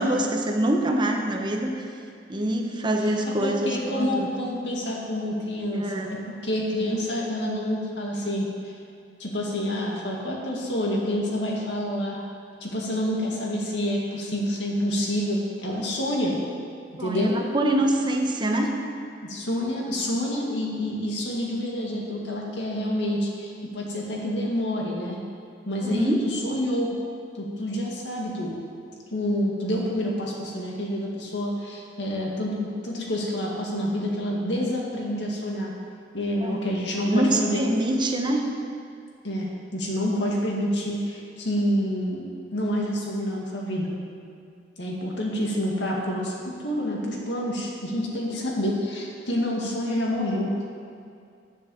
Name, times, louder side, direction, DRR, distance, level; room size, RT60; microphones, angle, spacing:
voice 1, 0.0-1.8 2.3-4.5 5.7-6.1 17.0-18.7 25.8-26.2 36.4-36.6 37.0-38.4, right 1 dB, 25° right, 2 dB, 1.0 m, -25 dB
voice 2, 3.4-8.5 9.2-12.2 12.6-16.4 17.0-17.4 19.2-25.2 25.7-26.9 27.4-28.5 29.1-35.7 36.1-37.6 39.2-42.2 42.5-43.9 44.8-46.3 46.6-50.5, equal, 85° left, -2 dB, 2.1 m, -28 dB
10.5 x 7.0 x 7.1 m, 2.4 s
head